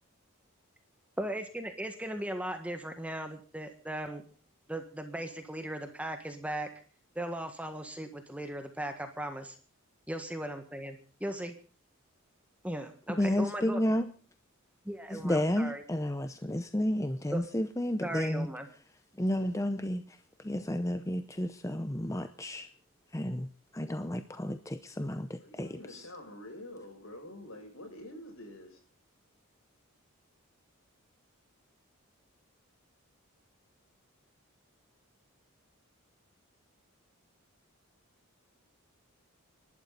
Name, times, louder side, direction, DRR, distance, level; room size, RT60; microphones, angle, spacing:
voice 1, 1.2-4.3 4.7-6.7 7.1-9.6 10.1-11.5 12.6-13.8 14.8-15.8 17.3-17.4 18.0-18.7, right 1 dB, 5° right, 1.6 m, -37 dB
voice 2, 13.1-14.1 15.1-18.5 19.2-22.7 23.1-23.5 23.7-26.1, left 1 dB, 15° left, 0.7 m, -32 dB
voice 3, 25.4-28.8, left 1 dB, 70° left, 7.2 m, -47 dB
29.0 x 12.0 x 4.0 m
head